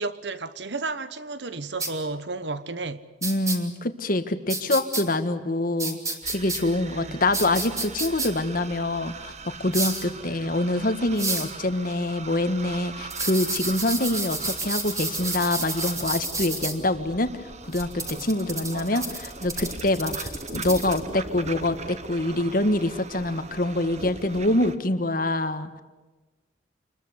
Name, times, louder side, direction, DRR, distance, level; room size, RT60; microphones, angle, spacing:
voice 1, 0.0-3.0 6.9-7.2 10.3-10.5 18.7-19.1, right 3 dB, 75° right, 1.3 m, -33 dB
sound 1, 1.8-1.9 3.2-3.6 4.5-5.0 5.8-6.6 7.3-8.3 9.7-10.1 11.2-11.5 13.1-16.7 17.7-21.0, right 3 dB, 20° right, 3.1 m, -30 dB
voice 2, 3.2-6.0 6.3-9.3 9.6-17.3 17.6-25.8, left 1 dB, 50° left, 1.7 m, -25 dB
sound 2, 6.2-24.8, right 3 dB, 40° right, 1.3 m, -40 dB
27.5 x 21.5 x 8.2 m
head